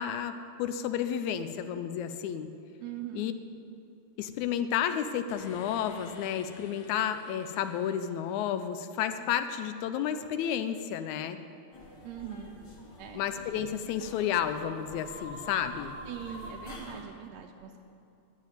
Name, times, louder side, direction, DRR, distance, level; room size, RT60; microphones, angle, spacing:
voice 1, 0.0-2.5 3.1-3.3 4.2-11.4 13.1-16.0, left 9 dB, 80° left, 9 dB, 1.9 m, -31 dB
voice 2, 2.8-3.3 12.0-12.5 13.0-13.2 16.1-17.8, right 10 dB, 80° right, 2 dB, 1.8 m, -41 dB
sound 1, 5.3-9.1, left 4 dB, 65° left, 1.2 m, -53 dB
sound 2, 11.7-17.0, left 1 dB, 45° left, 1.8 m, -46 dB
10.5 x 7.3 x 9.1 m, 2.7 s
omnidirectional pair, 3.4 m